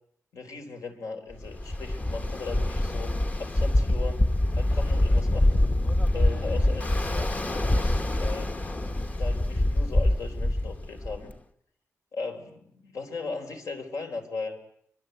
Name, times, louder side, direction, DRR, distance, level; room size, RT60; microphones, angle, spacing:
voice 1, 0.3-4.3 4.5-5.7 6.1-8.5 9.2-11.3 12.1-14.6, left 4 dB, 75° left, 5 dB, 4.2 m, -38 dB
Ocean, 1.4-11.3, left 1 dB, 25° left, 1.0 m, -25 dB
25.0 x 22.0 x 8.1 m, 0.71 s
wide cardioid pair, 130°, 6 cm